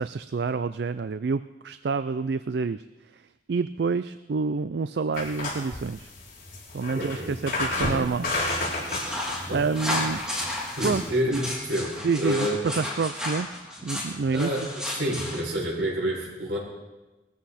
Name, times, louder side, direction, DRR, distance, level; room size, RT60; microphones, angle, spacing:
voice 1, 0.0-2.8 3.1-3.2 3.5-6.1 6.7-8.3 9.5-10.2 10.8-11.0 11.3-11.4 12.0-14.5, right 4 dB, 70° right, 12 dB, 0.4 m, -28 dB
sound 1, 5.1-11.1, left 2 dB, 50° left, 5.5 m, -32 dB
voice 2, 6.9-7.4 9.5-9.7 10.8-12.6 14.3-14.7 15.0-16.6, equal, 90° right, -3 dB, 6.3 m, -28 dB
sound 2, 8.4-15.4, left 1 dB, 5° right, 3.2 m, -33 dB
20.5 x 14.0 x 4.3 m, 1.1 s
head